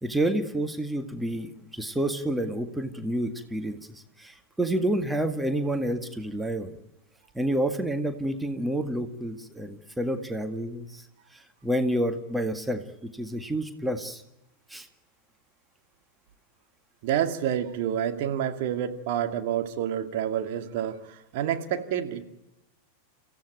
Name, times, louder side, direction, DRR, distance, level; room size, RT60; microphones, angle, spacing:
voice 1, 0.0-6.8 7.3-11.0 11.3-14.2 14.7-14.9, right 1 dB, 5° right, 7 dB, 1.9 m, -29 dB
voice 2, 17.0-22.2, right 10 dB, 50° right, 6 dB, 2.2 m, -28 dB
30.0 x 16.0 x 9.3 m, 0.91 s
figure-of-eight pair, 90°, 0 cm